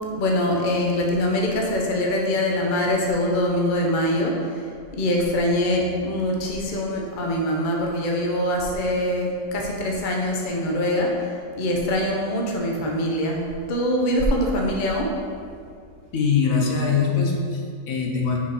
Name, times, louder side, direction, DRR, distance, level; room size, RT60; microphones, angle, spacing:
voice 1, 0.1-15.1, left 1 dB, 40° left, 0 dB, 0.9 m, -23 dB
voice 2, 16.1-18.4, left 5 dB, 85° left, -1 dB, 1.4 m, -22 dB
5.3 x 5.1 x 4.9 m, 2.2 s
omnidirectional pair, 1.4 m